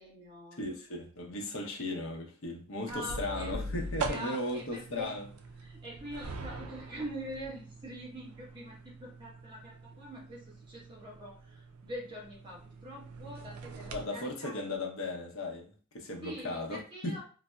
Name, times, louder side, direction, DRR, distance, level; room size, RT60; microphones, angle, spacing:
voice 1, 0.0-0.6 2.9-3.5 4.0-5.1 5.6-14.6 16.2-17.2, right 1 dB, 20° right, 0.9 m, -44 dB
voice 2, 0.6-5.3 13.9-16.8 17.0-17.2, left 2 dB, 65° left, 0.7 m, -36 dB
sound 1, 2.9-14.1, right 2 dB, 90° right, 0.4 m, -43 dB
3.9 x 2.0 x 2.2 m
head